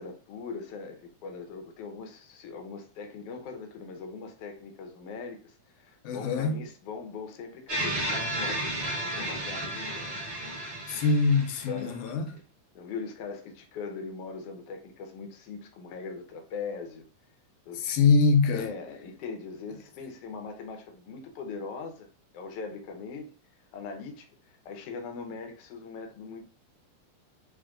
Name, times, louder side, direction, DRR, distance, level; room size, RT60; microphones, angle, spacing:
voice 1, 0.0-10.4 11.7-12.0 12.7-17.1 17.7-18.0 18.5-22.1 22.3-23.3 23.7-26.4, left 4 dB, 70° left, 1.5 m, -40 dB
voice 2, 6.0-6.6 10.9-12.3 17.7-18.7, left 4 dB, 85° left, 2.2 m, -24 dB
sound 1, 7.7-12.1, right 1 dB, 35° right, 1.2 m, -33 dB
4.9 x 2.7 x 3.7 m
omnidirectional pair, 3.6 m